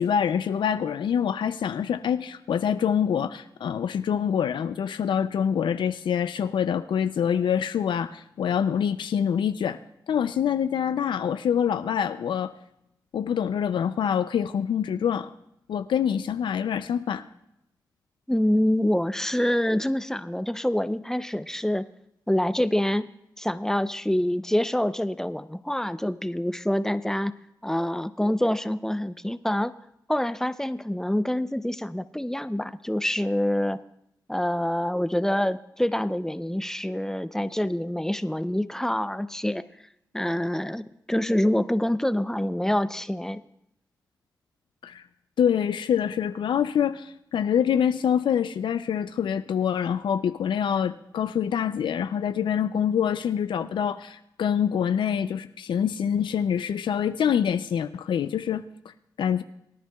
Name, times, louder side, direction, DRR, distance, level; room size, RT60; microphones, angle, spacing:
voice 1, 0.0-9.8 10.1-12.5 13.1-15.3 15.7-17.2 44.8-45.0 45.4-59.4, left 8 dB, 85° left, 11 dB, 0.4 m, -25 dB
voice 2, 18.3-21.8 22.3-23.1 23.4-27.3 27.6-29.7 30.1-33.8 34.3-39.6 40.1-43.4, left 1 dB, 5° left, 13 dB, 0.5 m, -26 dB
24.0 x 10.0 x 2.3 m, 0.79 s
cardioid pair, 50°, 8 cm